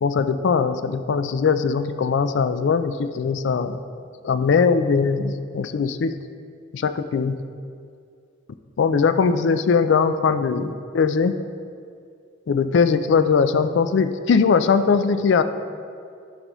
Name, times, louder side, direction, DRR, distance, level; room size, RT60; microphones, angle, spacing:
voice 1, 0.0-3.8 4.2-6.2 6.7-7.4 8.8-11.3 12.5-15.4, left 5 dB, 65° left, 11 dB, 0.4 m, -20 dB
11.0 x 5.3 x 3.1 m, 2.3 s
head